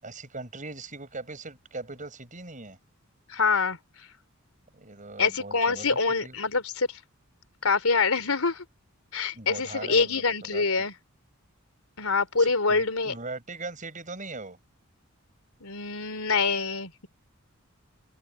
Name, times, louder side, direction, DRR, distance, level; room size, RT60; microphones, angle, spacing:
voice 1, 0.0-2.8 4.7-6.4 9.3-10.6 12.4-14.6, right 3 dB, 35° right, 7.9 m, -40 dB
voice 2, 3.3-3.8 5.2-7.0 7.6-8.6 9.1-10.9 12.0-13.1 15.6-17.1, left 4 dB, 90° left, 3.9 m, -25 dB
open air
head